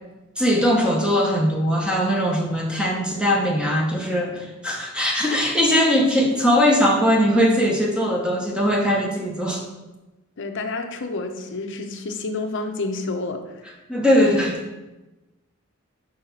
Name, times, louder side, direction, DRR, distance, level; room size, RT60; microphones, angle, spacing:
voice 1, 0.4-9.6 13.9-14.6, equal, 5° right, -1 dB, 0.8 m, -20 dB
voice 2, 10.4-13.6, left 3 dB, 60° left, 6 dB, 0.7 m, -29 dB
5.5 x 4.1 x 5.6 m, 1.1 s
head